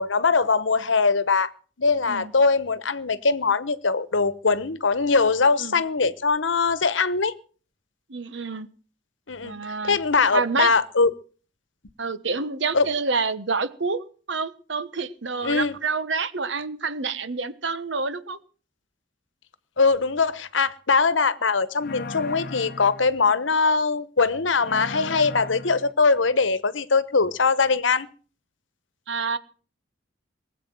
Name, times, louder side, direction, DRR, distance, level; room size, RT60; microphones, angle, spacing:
voice 1, 0.0-1.5 1.8-7.3 9.3-9.5 9.8-11.1 12.7-12.8 15.4-15.7 19.8-28.1, left 4 dB, 75° left, 15 dB, 1.1 m, -21 dB
voice 2, 8.1-8.7 9.4-10.0 10.3-10.7 12.0-18.4 29.1-29.4, right 4 dB, 65° right, 13 dB, 1.3 m, -28 dB
sound 1, 21.8-23.1 24.6-25.9, left 3 dB, 55° left, 0.9 m, -36 dB
20.0 x 8.3 x 7.8 m, 0.41 s
head